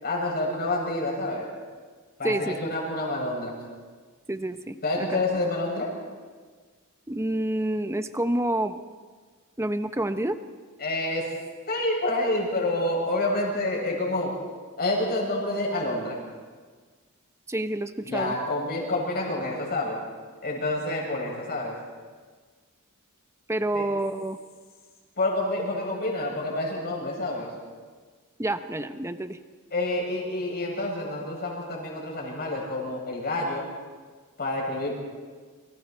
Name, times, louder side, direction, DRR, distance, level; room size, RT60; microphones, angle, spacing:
voice 1, 0.0-1.5 2.2-3.6 4.8-5.9 10.8-11.3 11.7-14.4 14.8-16.2 18.0-20.0 20.4-21.8 23.7-23.9 25.2-27.5 29.7-33.7 34.4-35.0, left 2 dB, 45° left, -2 dB, 7.3 m, -28 dB
voice 2, 2.2-2.7 4.3-5.1 7.1-8.8 9.6-10.4 17.5-18.3 23.5-24.4 28.4-29.4, right 1 dB, 15° right, 9 dB, 0.9 m, -28 dB
29.0 x 26.0 x 4.5 m, 1.5 s
head